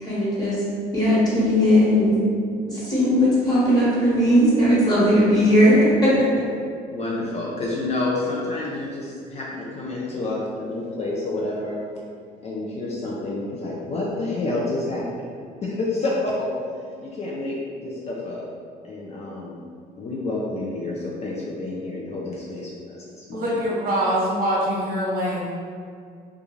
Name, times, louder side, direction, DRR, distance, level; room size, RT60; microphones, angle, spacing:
voice 1, 0.0-0.5 0.9-2.2 2.7-6.3, equal, 25° left, -9 dB, 1.2 m, -18 dB
voice 2, 6.9-11.8 12.4-15.2 15.6-16.5 17.0-18.4 18.8-19.7 20.0-23.6, left 2 dB, 40° left, -4 dB, 0.4 m, -29 dB
voice 3, 23.3-25.5, equal, 60° right, -5 dB, 0.8 m, -24 dB
2.4 x 2.3 x 3.1 m, 2.2 s
cardioid pair, 110°, 17 cm